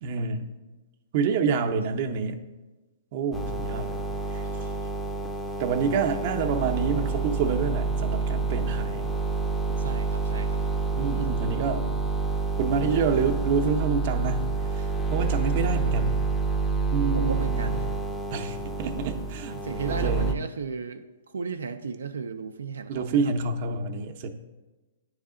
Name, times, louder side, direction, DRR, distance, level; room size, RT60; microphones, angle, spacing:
voice 1, 0.0-0.5 1.1-2.4 3.1-4.0 4.3-4.5 5.6-9.1 11.0-11.9 12.6-14.5 14.7-16.2 16.9-17.7 18.3-19.6 19.9-20.3 22.9-24.3, right 5 dB, 45° right, 6 dB, 0.6 m, -27 dB
sound 1, 3.3-20.3, right 4 dB, 5° left, 0.5 m, -28 dB
voice 2, 9.8-10.6 17.1-17.8 19.5-21.1 21.3-23.2, right 5 dB, 90° right, 7 dB, 0.4 m, -35 dB
9.6 x 3.2 x 3.7 m, 1.2 s
hypercardioid pair, 145°, 0 cm